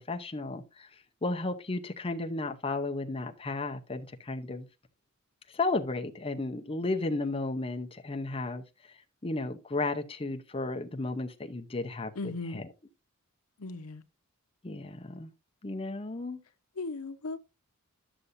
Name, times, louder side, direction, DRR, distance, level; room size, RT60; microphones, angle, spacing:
voice 1, 0.1-0.9 1.2-4.7 5.5-8.9 9.2-12.6 14.6-15.3 15.6-16.4, left 2 dB, 25° left, 0.7 m, -34 dB
voice 2, 12.2-12.6 13.6-14.0 16.8-17.4, left 3 dB, 75° left, 0.8 m, -37 dB
11.5 x 6.8 x 2.6 m
head